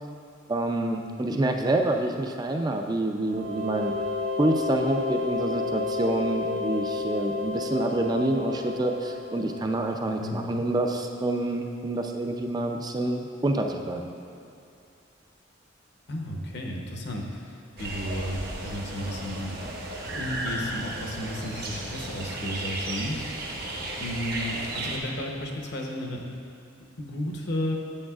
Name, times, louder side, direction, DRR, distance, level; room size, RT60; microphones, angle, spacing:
voice 1, 0.5-3.9 4.4-14.1, right 2 dB, 20° right, 3 dB, 0.4 m, -27 dB
sound 1, 3.3-9.9, left 4 dB, 80° right, 1.2 m, -31 dB
voice 2, 10.2-10.6 16.1-19.7 20.1-23.3 23.6-26.2 27.0-27.8, left 1 dB, 55° left, 0 dB, 0.9 m, -33 dB
sound 2, 17.8-25.0, right 2 dB, 50° right, 0.9 m, -34 dB
8.6 x 8.4 x 2.4 m, 2.5 s
head